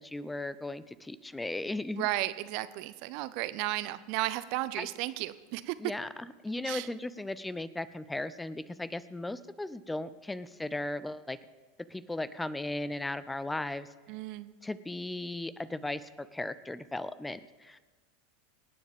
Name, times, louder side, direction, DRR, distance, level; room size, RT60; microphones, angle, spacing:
voice 1, 0.0-2.1 4.8-4.9 5.8-11.4 11.9-13.9 14.6-17.8, left 2 dB, 5° left, 16 dB, 0.5 m, -36 dB
voice 2, 2.0-5.8 6.7-6.9 14.1-14.5, right 17 dB, 50° right, 15 dB, 0.5 m, -34 dB
25.5 x 9.4 x 3.6 m, 1.3 s
figure-of-eight pair, 85°, 0 cm